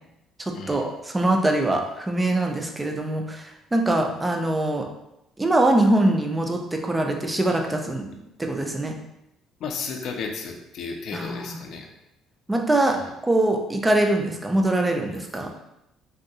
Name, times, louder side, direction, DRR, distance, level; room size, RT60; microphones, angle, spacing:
voice 1, 0.4-4.9 5.4-8.1 8.4-8.9 11.1-11.6 12.5-13.0 13.2-15.5, right 1 dB, 10° right, 3 dB, 0.3 m, -23 dB
voice 2, 9.6-11.9 12.9-13.1, left 5 dB, 50° left, 3 dB, 0.4 m, -33 dB
3.6 x 2.3 x 2.6 m, 0.86 s
cardioid pair, 160°, 0 cm